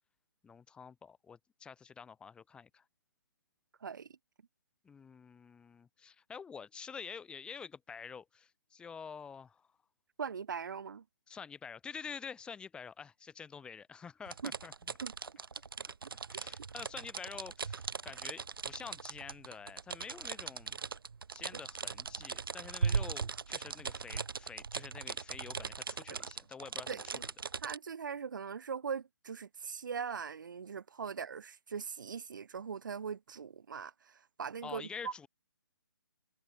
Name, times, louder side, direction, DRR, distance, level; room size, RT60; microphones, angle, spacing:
voice 1, 0.4-2.8 4.8-9.7 11.3-14.7 16.3-20.8 21.3-27.3 34.6-35.3, left 6 dB, 10° left, 5.0 m, -48 dB
voice 2, 10.2-11.0 14.4-14.5 15.0-15.1 26.1-26.2 26.9-27.2 27.6-35.1, right 6 dB, 60° right, 4.0 m, -40 dB
sound 1, 14.3-27.8, right 5 dB, 75° right, 0.9 m, -39 dB
hypercardioid pair, 150°, 12 cm